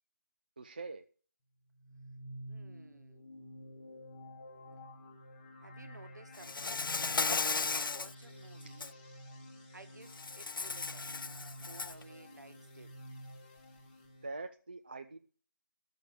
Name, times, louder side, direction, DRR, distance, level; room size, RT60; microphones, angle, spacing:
voice 1, 0.6-1.0 8.7-8.8 14.2-15.2, right 3 dB, 25° right, 0.4 m, -43 dB
sound 1, 1.7-14.3, equal, 10° left, 1.4 m, -51 dB
voice 2, 2.5-3.3 5.6-6.9 7.6-8.9 9.7-11.3 11.6-13.1, right 3 dB, 55° right, 1.5 m, -55 dB
Insect, 6.4-8.1 8.6-8.9 10.1-12.0, left 4 dB, 80° left, 0.4 m, -35 dB
12.5 x 6.5 x 6.9 m
figure-of-eight pair, 170°, 11 cm